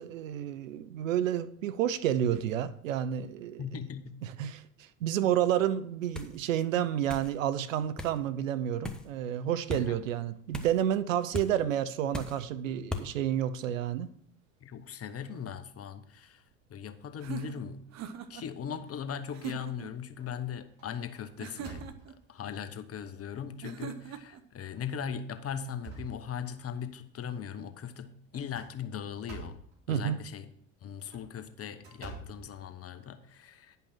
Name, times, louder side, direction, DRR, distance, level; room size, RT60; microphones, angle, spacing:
voice 1, 0.0-3.6 4.2-4.6 5.0-14.1 29.9-30.2, right 10 dB, 85° right, 0.6 m, -30 dB
voice 2, 3.6-4.2 9.7-10.0 14.6-16.4 16.7-17.9 18.3-21.9 22.3-29.6 29.9-30.5 30.8-33.8, left 8 dB, 40° left, 1.0 m, -39 dB
sound 1, 6.1-6.4 7.1-7.3 8.0-8.2 8.8-9.1 9.7-9.9 10.5-10.8 11.3-11.5 12.1-12.4 12.9-13.1, left 2 dB, ahead, 1.2 m, -37 dB
sound 2, 17.2-18.5 19.3-19.9 21.4-22.2 23.6-24.4, right 8 dB, 45° right, 0.9 m, -41 dB
sound 3, 19.7-19.8 20.2-20.4 20.8-22.4 23.1-23.2 23.6-23.7 24.6-24.9 25.3-26.8 28.3-29.8 30.9-33.1, right 3 dB, 60° right, 3.9 m, -48 dB
10.0 x 5.5 x 5.7 m
hypercardioid pair, 70°, 38 cm